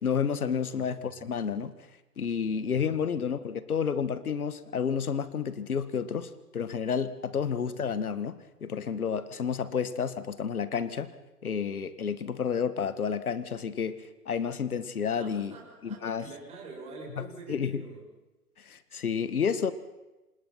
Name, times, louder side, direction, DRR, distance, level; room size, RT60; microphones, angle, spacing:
voice 1, 0.0-1.7 2.2-11.1 11.4-15.5 15.8-16.3 17.5-17.8 18.7-19.7, left 7 dB, 65° left, 14 dB, 1.9 m, -30 dB
voice 2, 0.6-1.2 2.7-3.2 7.3-7.6 9.5-9.7 15.2-18.1, right 3 dB, 15° right, -3 dB, 6.8 m, -47 dB
27.0 x 20.0 x 5.8 m, 1.0 s
figure-of-eight pair, 140°, 47 cm